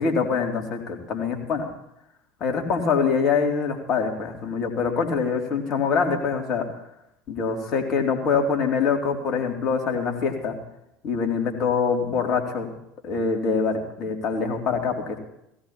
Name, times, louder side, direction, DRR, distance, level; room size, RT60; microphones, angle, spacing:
voice 1, 0.0-1.7 2.4-6.6 7.3-10.5 11.0-12.7 13.0-15.2, left 5 dB, 45° left, 3 dB, 2.7 m, -24 dB
17.0 x 16.5 x 2.9 m, 0.82 s
figure-of-eight pair, 70°, 0 cm